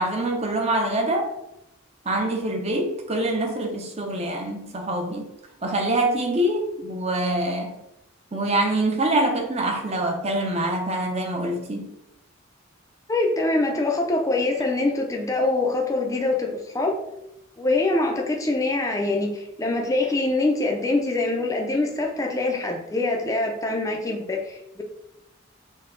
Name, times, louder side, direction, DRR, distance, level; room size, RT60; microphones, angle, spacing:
voice 1, 0.0-1.3 2.1-5.3 5.6-7.8 8.3-11.9, right 1 dB, 30° right, 0.6 m, -25 dB
voice 2, 13.1-17.0 17.6-24.8, left 2 dB, 15° left, 0.5 m, -24 dB
5.5 x 2.2 x 3.8 m
head